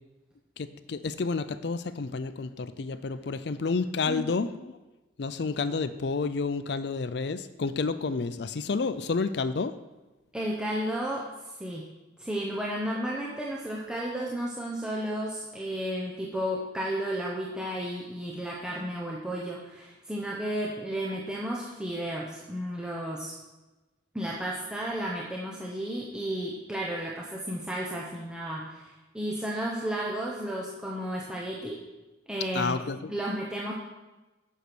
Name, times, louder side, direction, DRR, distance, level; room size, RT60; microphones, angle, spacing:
voice 1, 0.6-4.7 5.2-9.7 32.5-33.1, left 4 dB, 60° left, 12 dB, 0.5 m, -30 dB
voice 2, 10.3-11.2 11.6-11.8 12.2-23.3 24.1-31.8 32.3-32.8 33.1-33.7, right 1 dB, 5° right, -4 dB, 0.9 m, -33 dB
8.3 x 6.5 x 6.1 m, 1.1 s
head